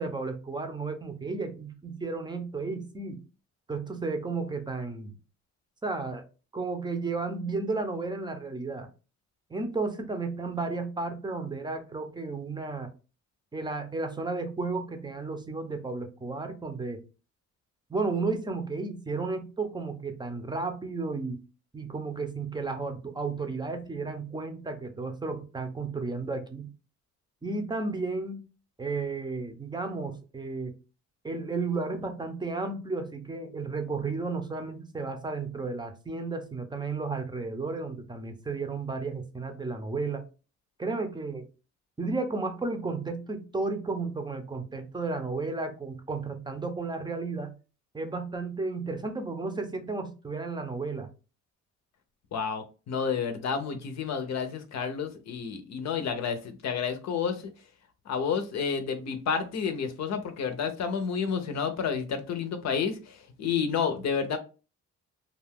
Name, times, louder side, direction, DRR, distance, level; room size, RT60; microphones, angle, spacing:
voice 1, 0.0-3.2 3.7-5.1 5.8-6.2 6.5-8.9 9.5-12.9 13.5-17.0 17.9-21.4 21.7-26.7 27.4-28.4 28.8-30.8 31.2-40.3 40.8-41.5 42.0-47.5 47.9-51.1, right 3 dB, 15° right, 0.6 m, -33 dB
voice 2, 52.3-57.4 58.1-64.4, left 6 dB, 60° left, 0.7 m, -30 dB
2.5 x 2.3 x 3.4 m
cardioid pair, 90°, 30 cm